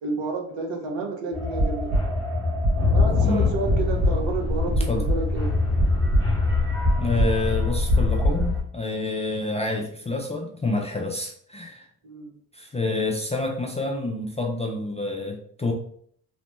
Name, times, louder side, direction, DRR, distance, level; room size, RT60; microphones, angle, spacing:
voice 1, 0.0-2.0 2.9-5.6 12.0-12.3, right 3 dB, 65° right, 3 dB, 0.9 m, -30 dB
sound 1, 1.3-8.6, left 2 dB, 50° right, 1.5 m, -22 dB
voice 2, 3.2-3.6 4.9-5.0 7.0-11.9 12.5-15.7, left 2 dB, 15° left, 0 dB, 0.3 m, -28 dB
3.0 x 2.0 x 3.0 m, 0.63 s
hypercardioid pair, 50°, 48 cm